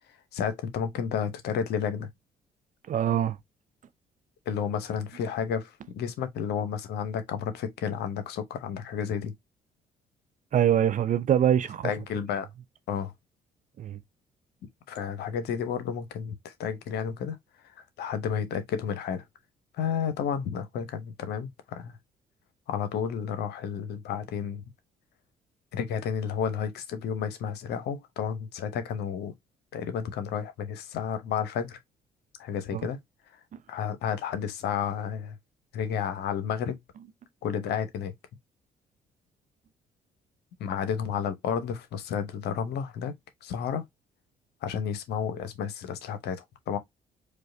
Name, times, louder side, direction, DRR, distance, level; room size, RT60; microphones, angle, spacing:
voice 1, 0.3-2.1 4.5-9.3 11.8-12.5 12.9-13.1 14.9-17.4 17.8-19.2 19.8-22.0 22.7-24.6 25.7-29.3 29.7-31.8 32.4-33.0 33.7-35.4 35.7-36.8 37.4-38.1 40.6-43.1 43.4-43.9 44.6-46.8, left 7 dB, 65° left, 0.8 m, -31 dB
voice 2, 2.9-3.4 10.5-11.9 13.8-14.0 32.7-32.9, right 10 dB, 45° right, 0.5 m, -24 dB
4.7 x 2.3 x 2.5 m
hypercardioid pair, 45°, 18 cm